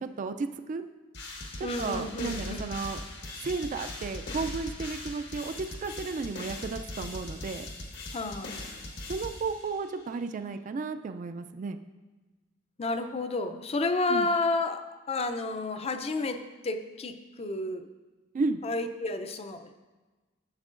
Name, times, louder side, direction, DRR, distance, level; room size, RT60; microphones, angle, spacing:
voice 1, 0.2-0.8 1.6-3.0 3.4-7.7 9.1-11.8 14.1-14.3 18.3-18.6, right 4 dB, 40° right, 8 dB, 0.3 m, -33 dB
sound 1, 1.1-10.0, left 2 dB, 60° left, 1.1 m, -40 dB
voice 2, 1.6-2.6 8.1-8.7 12.8-17.9 18.6-19.8, left 2 dB, 30° left, 9 dB, 0.5 m, -31 dB
11.0 x 7.3 x 2.5 m, 1.2 s
head